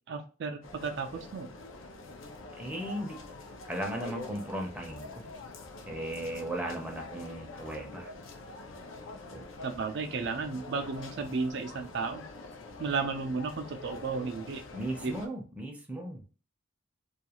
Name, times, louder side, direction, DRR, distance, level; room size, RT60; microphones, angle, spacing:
voice 1, 0.1-1.5 9.6-12.2 12.8-14.6 15.0-15.1, right 4 dB, 60° right, 5 dB, 0.4 m, -33 dB
sound 1, 0.6-15.3, left 3 dB, 90° left, 0.6 m, -46 dB
voice 2, 2.6-3.2 3.7-5.3 5.9-8.1 9.3-9.4 14.7-16.2, right 1 dB, 5° right, 1 dB, 0.5 m, -37 dB
2.4 x 2.3 x 2.9 m, 0.35 s
head